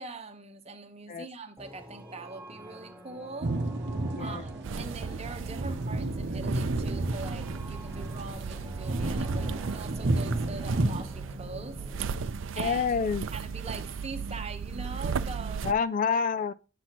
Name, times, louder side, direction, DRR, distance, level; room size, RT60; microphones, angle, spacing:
voice 1, 0.0-3.5 4.2-11.8 12.1-12.9 13.3-15.7, right 3 dB, 35° right, 0.9 m, -42 dB
sound 1, 1.6-12.2, equal, 5° right, 1.3 m, -47 dB
sound 2, 3.4-11.0, right 2 dB, 60° right, 0.8 m, -32 dB
sound 3, 4.6-15.7, right 5 dB, 80° right, 0.4 m, -36 dB
voice 2, 12.6-13.2 15.6-16.5, left 6 dB, 40° left, 0.3 m, -27 dB
9.8 x 6.8 x 3.0 m
head